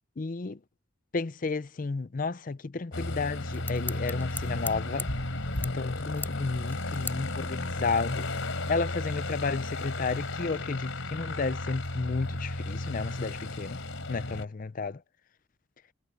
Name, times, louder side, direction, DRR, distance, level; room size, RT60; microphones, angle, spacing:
voice 1, 0.2-0.6 1.1-5.1 5.6-8.3 8.7-13.8 14.1-14.9, left 4 dB, 40° left, 0.5 m, -32 dB
Aircraft, 2.9-14.4, left 2 dB, 75° left, 3.5 m, -34 dB
sound 1, 3.2-9.6, left 4 dB, 10° left, 6.2 m, -43 dB
head